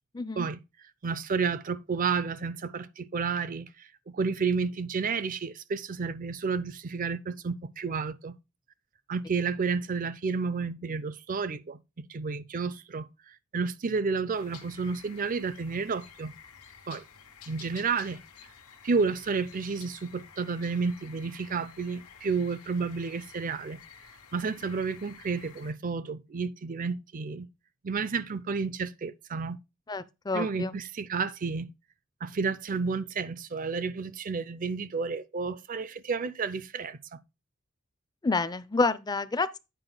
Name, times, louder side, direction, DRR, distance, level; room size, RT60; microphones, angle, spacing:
voice 1, 0.1-0.5 29.9-30.8 38.2-39.6, left 3 dB, 20° left, 0.4 m, -28 dB
voice 2, 1.0-3.9 4.1-8.3 9.1-11.8 12.1-13.1 13.5-16.3 16.9-17.0 17.5-18.2 18.8-23.8 24.3-27.5 27.8-29.6 30.3-31.7 32.2-37.2, right 5 dB, 40° right, 0.5 m, -31 dB
sound 1, 14.3-25.7, left 7 dB, 90° left, 1.2 m, -51 dB
9.1 x 5.0 x 3.8 m
head